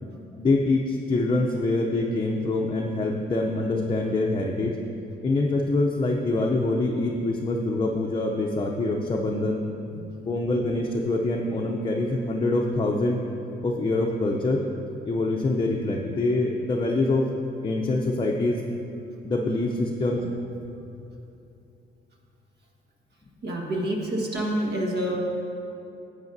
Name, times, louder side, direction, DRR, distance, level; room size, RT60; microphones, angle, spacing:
voice 1, 0.0-4.8 5.2-9.6 10.3-13.2 13.6-14.6 15.1-17.3 17.6-18.6 19.2-20.2, left 2 dB, 25° left, 0 dB, 0.6 m, -25 dB
voice 2, 23.4-25.2, right 1 dB, 60° right, 0 dB, 1.5 m, -27 dB
11.0 x 8.1 x 2.7 m, 2.7 s
cardioid pair, 90°, 20 cm